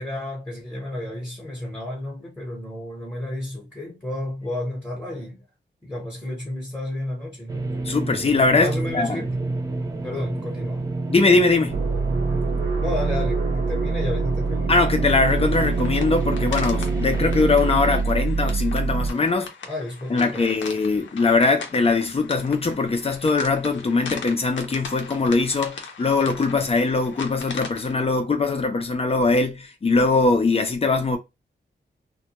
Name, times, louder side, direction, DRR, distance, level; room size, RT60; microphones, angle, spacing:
voice 1, 0.0-5.4 5.8-7.5 8.5-9.3 10.0-10.9 12.8-14.8 19.1-19.2 19.7-20.5, left 1 dB, 10° left, 0.9 m, -32 dB
sound 1, 7.5-18.0, right 2 dB, 20° right, 0.6 m, -30 dB
voice 2, 7.8-9.2 11.1-11.8 14.7-19.5 20.1-31.2, left 3 dB, 30° left, 0.5 m, -21 dB
sound 2, 11.7-19.1, right 4 dB, 80° right, 0.6 m, -25 dB
sound 3, 15.2-27.9, left 5 dB, 85° left, 0.6 m, -39 dB
2.2 x 2.2 x 2.8 m
wide cardioid pair, 135°, 19 cm